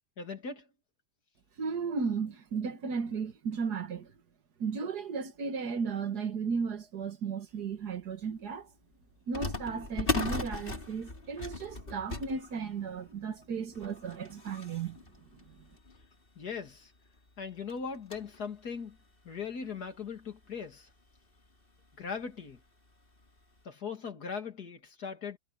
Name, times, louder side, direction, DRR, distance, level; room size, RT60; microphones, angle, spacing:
voice 1, 0.2-0.6 16.4-16.9 17.4-19.0 19.2-20.9 22.0-22.6 23.6-25.4, left 6 dB, 75° left, 2.9 m, -39 dB
voice 2, 1.6-4.1 4.6-8.7 9.3-15.0 15.3-15.7, right 5 dB, 80° right, 2.2 m, -35 dB
sound 1, 7.9-8.0 9.3-16.3 16.8-16.9 17.2-17.3 17.7-18.4 18.9-19.0 19.9-20.0 20.3-20.5 21.8-22.1 22.5-22.6 23.2-23.4, left 3 dB, 35° left, 3.2 m, -38 dB
omnidirectional pair, 1.7 m